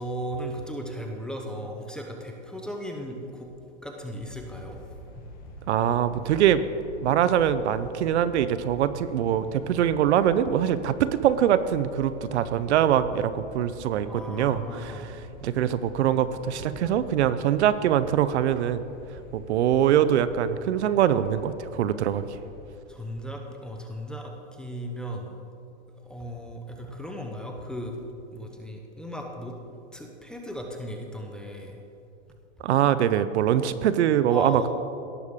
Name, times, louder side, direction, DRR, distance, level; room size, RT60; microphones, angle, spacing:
voice 1, 0.0-3.5 3.8-4.8 5.1-5.3 14.0-15.1 22.9-25.3 26.0-28.0 28.3-29.6 29.9-31.8 34.3-34.7, equal, ahead, 1 dB, 0.5 m, -36 dB
sound 1, 4.2-22.7, equal, 25° left, 1.4 m, -46 dB
voice 2, 5.7-6.6 7.0-15.1 15.4-18.8 19.3-22.2 32.6-34.7, right 10 dB, 75° right, 14 dB, 0.6 m, -23 dB
17.5 x 6.4 x 3.6 m, 2.7 s
hypercardioid pair, 140°, 35 cm